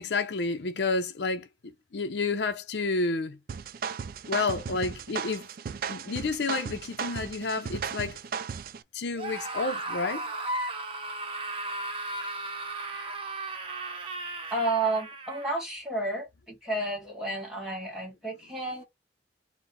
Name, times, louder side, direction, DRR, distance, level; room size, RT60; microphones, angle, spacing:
voice 1, 0.0-3.4 4.3-5.5 5.9-8.2 8.9-10.3, left 3 dB, 70° left, 0.6 m, -30 dB
sound 1, 3.5-8.8, right 6 dB, 55° right, 0.3 m, -36 dB
Screaming, 9.1-15.6, right 2 dB, 30° right, 0.7 m, -35 dB
voice 2, 14.5-18.9, right 2 dB, 5° right, 1.5 m, -31 dB
4.3 x 2.1 x 3.8 m
head